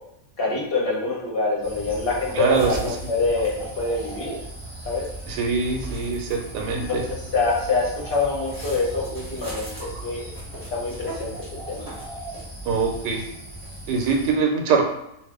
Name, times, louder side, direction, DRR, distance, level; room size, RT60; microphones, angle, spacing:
voice 1, 0.4-4.4 4.8-5.0 6.7-10.3 10.7-11.3 11.7-11.8, left 3 dB, 50° left, -3 dB, 0.7 m, -25 dB
sound 1, 1.6-14.3, right 1 dB, 20° right, 1.0 m, -37 dB
voice 2, 2.3-2.8 5.3-7.0 12.7-13.2 13.9-14.8, right 5 dB, 85° right, 2 dB, 1.2 m, -23 dB
2.5 x 2.4 x 3.4 m, 0.81 s
omnidirectional pair, 1.7 m